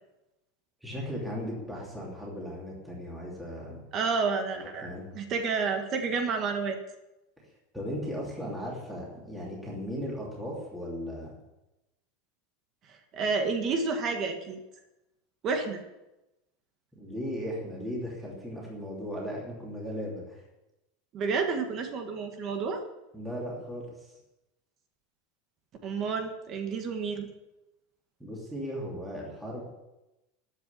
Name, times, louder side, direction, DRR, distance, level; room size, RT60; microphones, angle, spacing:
voice 1, 0.8-3.8 4.6-5.1 7.4-7.5 7.7-11.3 17.0-20.4 23.1-24.1 28.2-29.7, equal, 5° right, -5 dB, 3.0 m, -37 dB
voice 2, 3.9-6.8 13.1-14.6 15.4-15.8 21.1-22.8 25.8-27.3, right 4 dB, 25° right, 5 dB, 1.5 m, -30 dB
12.0 x 8.3 x 9.9 m, 0.98 s
supercardioid pair, 180°, 0 cm